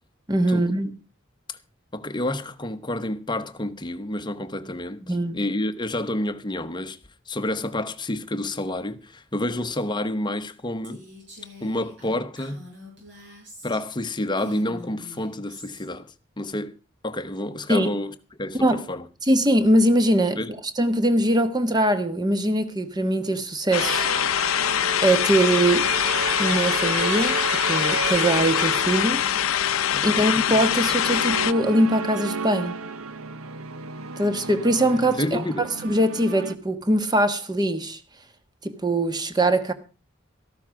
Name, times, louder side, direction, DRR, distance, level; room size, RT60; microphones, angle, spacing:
voice 1, 0.3-0.9 5.1-5.4 17.7-17.9 18.6-18.8 19.2-20.4 20.8-24.1 25.0-25.9 26.4-29.3 30.0-32.8 34.2-38.0 38.6-39.7, right 1 dB, 20° right, 1.2 m, -22 dB
voice 2, 1.9-7.0 7.3-11.0 11.6-12.6 13.6-16.7 17.0-19.1 20.4-20.5 29.9-30.4 35.2-35.7, left 1 dB, 20° left, 0.9 m, -29 dB
Female speech woman speaking, 10.8-14.0 14.3-15.9, left 2 dB, 60° right, 7.9 m, -45 dB
sound 1, 23.7-31.5, left 10 dB, 80° left, 0.6 m, -23 dB
sound 2, 23.8-36.6, right 5 dB, 85° right, 0.9 m, -33 dB
14.0 x 12.5 x 4.7 m
head